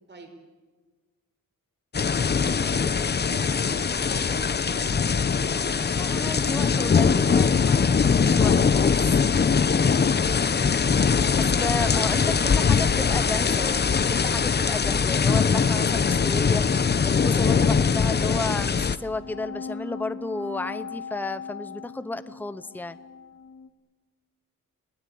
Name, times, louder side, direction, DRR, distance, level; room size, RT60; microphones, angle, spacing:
sound 1, 1.9-19.0, left 6 dB, 30° left, 0.8 m, -22 dB
voice 1, 2.5-5.7 11.7-13.7, right 2 dB, 30° right, 5 dB, 5.3 m, -45 dB
voice 2, 5.9-9.2 11.3-16.7 17.0-23.0, left 2 dB, 5° left, 13 dB, 0.8 m, -33 dB
sound 2, 18.7-23.7, left 5 dB, 55° left, 2.2 m, -39 dB
29.5 x 20.0 x 8.6 m, 1.3 s
wide cardioid pair, 145°, 33 cm